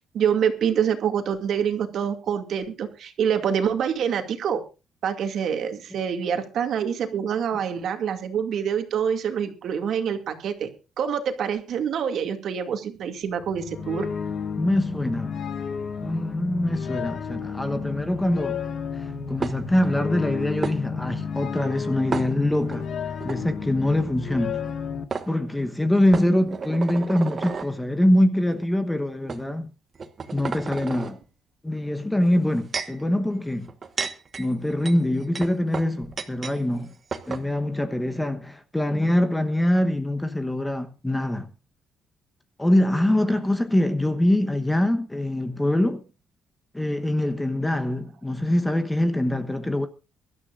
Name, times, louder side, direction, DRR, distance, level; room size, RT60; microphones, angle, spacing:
voice 1, 0.0-4.6 5.0-10.7 11.0-14.1 26.3-26.4, right 8 dB, 50° right, 2.3 m, -26 dB
sound 1, 13.3-25.0, left 6 dB, 45° left, 1.5 m, -32 dB
voice 2, 14.6-15.3 16.0-18.6 18.9-22.9 23.2-24.6 25.3-29.7 30.3-31.2 31.6-33.7 34.4-36.9 37.3-41.5 42.6-46.0 46.7-49.9, left 1 dB, 5° left, 1.0 m, -24 dB
sound 2, 19.4-19.9 20.6-20.8 22.1-22.8 23.2-23.4 24.7-24.8 25.1-25.3 26.1-27.7 28.5-28.6 29.3-29.4 29.9-31.1 32.2-33.0 33.7-36.6 36.8-36.9 37.1-37.5, right 5 dB, 30° right, 1.4 m, -32 dB
24.0 x 12.5 x 2.5 m
cardioid pair, 160°, 0 cm